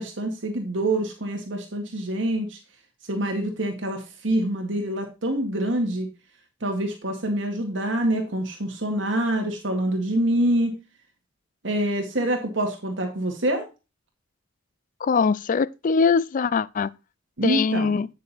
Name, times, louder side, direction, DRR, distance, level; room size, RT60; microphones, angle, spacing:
voice 1, 0.0-2.6 3.1-6.1 6.6-10.7 11.6-13.6 17.4-18.0, right 1 dB, 70° right, 2.1 m, -26 dB
voice 2, 15.0-16.9 17.4-18.1, left 5 dB, 45° left, 0.4 m, -22 dB
9.2 x 6.5 x 4.1 m
head